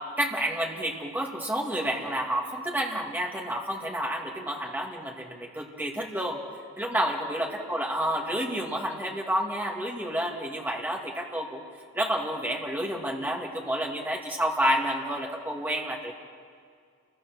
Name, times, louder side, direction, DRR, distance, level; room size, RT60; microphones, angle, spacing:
voice 1, 0.2-6.4 6.8-11.6 11.9-16.1, equal, 10° right, -1 dB, 2.4 m, -29 dB
29.5 x 22.0 x 6.4 m, 2.1 s
head